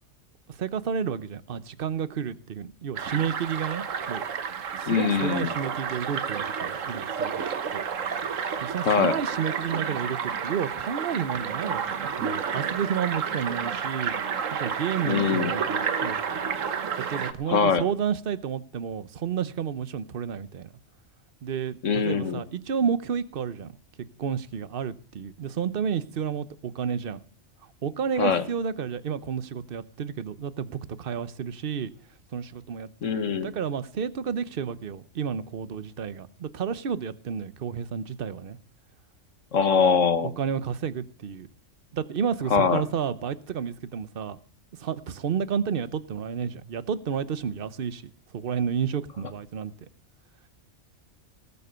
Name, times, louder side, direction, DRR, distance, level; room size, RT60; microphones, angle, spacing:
voice 1, 0.5-4.2 4.7-7.4 7.7-7.8 8.6-14.2 14.5-16.5 17.0-20.7 21.4-23.7 24.2-27.2 27.8-31.9 32.3-38.6 40.2-41.5 41.9-44.4 44.8-48.0 48.3-49.7, right 7 dB, 50° right, 1.0 m, -31 dB
sound 1, 2.9-17.3, right 7 dB, 85° right, 1.4 m, -30 dB
voice 2, 4.9-5.5 8.8-9.2 15.1-15.5 17.5-17.8 21.8-22.4 28.2-28.4 33.0-33.5 39.5-40.3 42.5-42.8, left 6 dB, 80° left, 1.8 m, -23 dB
19.5 x 6.9 x 6.8 m
omnidirectional pair, 1.3 m